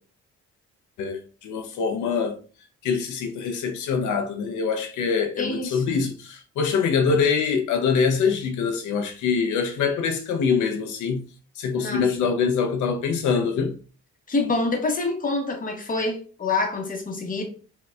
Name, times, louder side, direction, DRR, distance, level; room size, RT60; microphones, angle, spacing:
voice 1, 1.0-2.4 2.8-11.2 11.6-13.7, left 5 dB, 75° left, 0.5 m, -24 dB
voice 2, 5.4-6.0 11.8-12.3 14.3-17.4, left 3 dB, 30° left, 0.8 m, -27 dB
4.0 x 2.2 x 2.2 m
cardioid pair, 90°, 30 cm